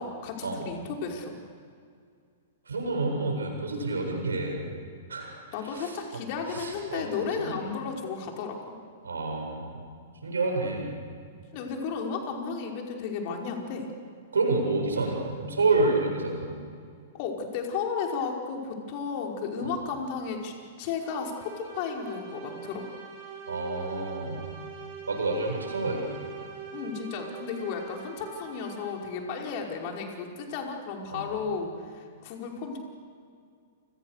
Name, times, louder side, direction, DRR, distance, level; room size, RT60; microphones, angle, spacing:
voice 1, 0.0-1.4 5.5-8.8 11.5-13.9 17.1-22.8 26.7-32.8, left 5 dB, 45° left, 1 dB, 5.3 m, -34 dB
voice 2, 2.7-4.7 5.1-5.3 5.7-5.9 6.5-7.0 7.4-7.6 9.0-9.8 10.2-10.9 14.3-16.5 19.6-19.7 23.5-24.5 25.1-26.1 31.1-31.2, right 3 dB, 75° right, 2 dB, 7.7 m, -28 dB
sound 1, 21.0-29.4, right 6 dB, 45° right, 7.8 m, -43 dB
29.5 x 27.5 x 6.8 m, 2.2 s
figure-of-eight pair, 105°, 0 cm